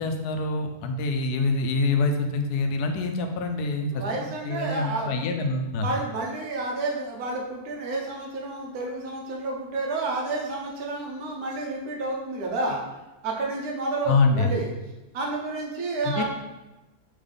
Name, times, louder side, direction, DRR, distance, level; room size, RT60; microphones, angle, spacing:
voice 1, 0.0-5.9 14.1-14.6 16.0-16.2, left 3 dB, 80° left, 5 dB, 1.1 m, -25 dB
voice 2, 3.9-5.2 5.8-12.8 13.2-14.7 15.1-16.2, right 2 dB, 75° right, -1 dB, 1.3 m, -30 dB
3.5 x 3.4 x 3.7 m, 1.0 s
omnidirectional pair, 1.7 m